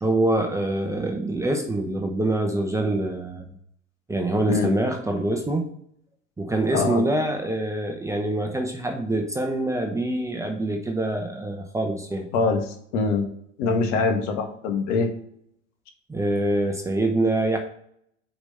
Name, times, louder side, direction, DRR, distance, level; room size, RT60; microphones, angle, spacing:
voice 1, 0.0-3.4 4.1-5.7 6.4-12.3 16.1-17.6, right 1 dB, 10° right, 3 dB, 0.9 m, -25 dB
voice 2, 12.3-13.2 13.6-15.1, left 4 dB, 65° left, 4 dB, 1.8 m, -23 dB
5.1 x 5.0 x 5.5 m, 0.67 s
supercardioid pair, 115°, 39 cm